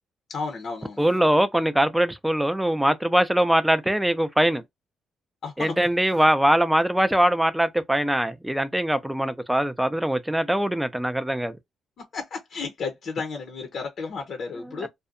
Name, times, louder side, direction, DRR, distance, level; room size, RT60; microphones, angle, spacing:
voice 1, 0.3-1.0 5.4-5.7 12.0-14.9, left 4 dB, 60° left, 0.7 m, -33 dB
voice 2, 1.0-4.6 5.6-11.6 14.8-14.9, right 1 dB, 5° right, 0.5 m, -22 dB
2.6 x 2.1 x 2.4 m
cardioid pair, 90°, 0 cm